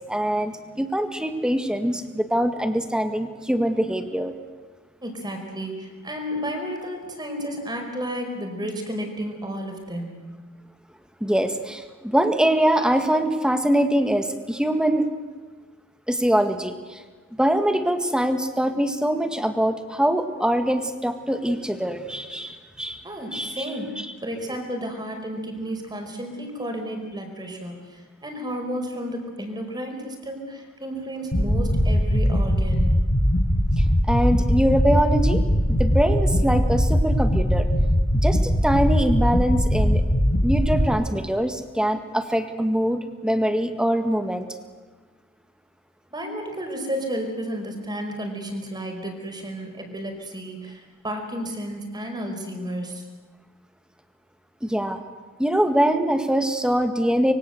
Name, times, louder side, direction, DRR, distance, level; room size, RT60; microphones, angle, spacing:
voice 1, 0.1-4.3 11.2-15.1 16.1-17.0 17.4-23.0 23.3-23.6 34.1-35.4 35.7-37.7 38.2-40.0 40.4-44.5 54.6-55.0 55.4-57.3, equal, 5° right, 8 dB, 1.9 m, -23 dB
voice 2, 5.0-10.2 23.0-32.9 46.1-53.0, equal, 20° right, 4 dB, 4.9 m, -32 dB
sound 1, 31.3-40.9, equal, 45° left, 2.2 m, -20 dB
25.5 x 23.0 x 8.0 m, 1.4 s
head